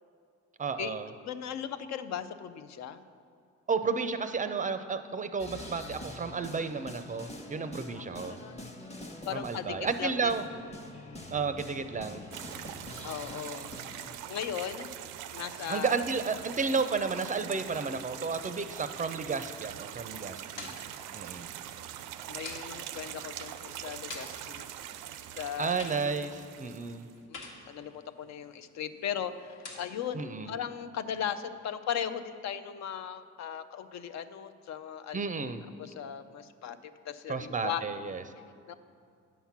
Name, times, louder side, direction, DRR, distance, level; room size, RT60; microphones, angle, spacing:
voice 1, 0.6-1.1 3.7-8.4 9.3-10.4 11.3-12.2 15.7-20.7 21.1-21.5 25.6-27.1 30.1-30.5 35.1-35.6 37.3-38.2, right 5 dB, 25° right, 10 dB, 0.4 m, -32 dB
voice 2, 1.2-3.0 7.9-8.5 9.3-10.4 13.0-13.7 14.3-14.9 15.3-16.0 22.3-24.7 25.4-25.8 27.3-35.2 35.8-37.8 38.7-38.8, left 8 dB, 65° left, 11 dB, 0.5 m, -37 dB
sound 1, 5.4-14.1, left 1 dB, 20° left, 1.0 m, -45 dB
sound 2, 12.3-27.1, right 11 dB, 85° right, 0.5 m, -43 dB
sound 3, 20.0-30.1, left 3 dB, 80° left, 1.4 m, -50 dB
9.2 x 5.8 x 5.8 m, 2.3 s
cardioid pair, 90°, 30 cm